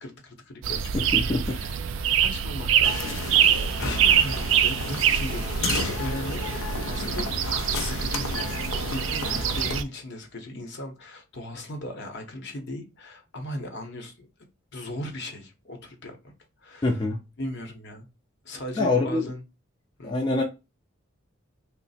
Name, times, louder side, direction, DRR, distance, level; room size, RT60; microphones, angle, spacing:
voice 1, 0.0-1.8 2.1-3.0 3.5-6.5 6.8-7.3 7.7-14.3 14.7-16.3 16.6-17.0 17.4-18.1 18.4-19.4 20.0-20.1, left 1 dB, 60° left, 0.8 m, -37 dB
sound 1, 0.6-9.8, right 9 dB, 65° right, 0.3 m, -25 dB
voice 2, 0.9-1.6 16.8-17.2 18.8-19.3 20.0-20.4, left 2 dB, 20° left, 0.4 m, -25 dB
sound 2, 2.8-9.8, left 4 dB, 80° left, 0.5 m, -33 dB
3.1 x 2.0 x 4.0 m
head